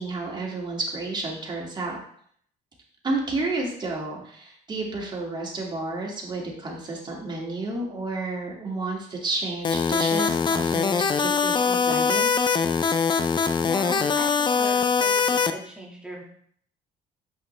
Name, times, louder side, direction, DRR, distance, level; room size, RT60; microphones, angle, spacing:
voice 1, 0.0-2.0 3.0-12.3, right 2 dB, 25° right, -2 dB, 2.2 m, -31 dB
sound 1, 9.6-15.5, left 5 dB, 30° left, 0.5 m, -22 dB
voice 2, 13.6-16.2, equal, 5° right, -3 dB, 1.9 m, -38 dB
7.5 x 5.8 x 3.2 m, 0.62 s
cardioid pair, 110°, 17 cm